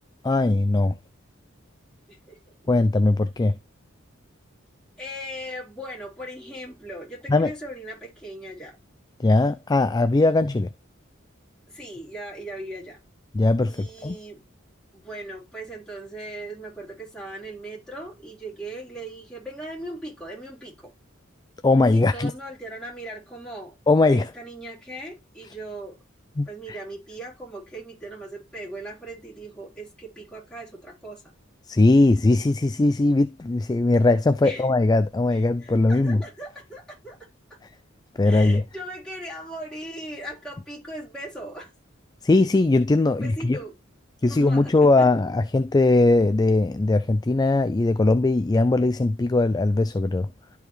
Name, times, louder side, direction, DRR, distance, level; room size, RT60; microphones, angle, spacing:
voice 1, 0.2-1.0 2.7-3.6 7.3-7.5 9.2-10.7 13.3-14.2 21.6-22.3 23.9-24.3 26.4-26.8 31.7-36.2 38.2-38.6 42.2-43.6 44.2-50.3, left 2 dB, 20° left, 0.3 m, -20 dB
voice 2, 5.0-8.8 11.7-13.0 13.6-14.4 14.9-20.9 21.9-23.8 24.1-26.0 26.5-31.2 34.4-34.7 35.3-37.6 38.2-41.7 43.1-43.8 44.2-45.1, right 1 dB, 5° left, 3.9 m, -39 dB
12.0 x 4.6 x 3.3 m
head